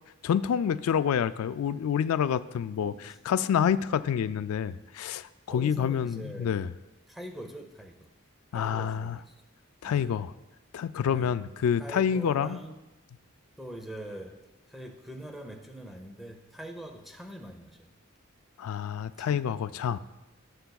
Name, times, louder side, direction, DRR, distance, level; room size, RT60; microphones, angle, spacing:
voice 1, 0.2-6.7 8.5-9.2 9.8-10.3 10.7-12.6 18.6-20.0, left 8 dB, 90° left, 15 dB, 0.3 m, -28 dB
voice 2, 2.8-3.2 5.5-6.6 7.1-8.1 8.5-9.4 9.8-10.1 11.1-11.4 11.8-12.7 13.6-18.0 19.2-19.4 19.9-20.0, right 1 dB, ahead, 4 dB, 0.7 m, -43 dB
15.5 x 6.7 x 2.3 m, 1.0 s
head